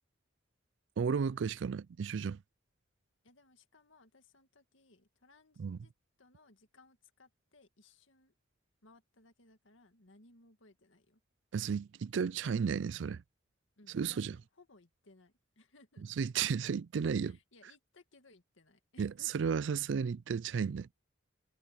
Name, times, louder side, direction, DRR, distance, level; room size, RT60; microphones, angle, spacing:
voice 1, 1.0-2.4 5.6-5.8 11.5-13.2 13.9-14.4 16.2-17.4 19.0-20.9, right 6 dB, 65° right, 0.4 m, -33 dB
voice 2, 3.2-5.9 6.2-8.3 8.8-11.2 13.8-16.0 17.2-19.5, left 2 dB, 80° left, 2.0 m, -63 dB
head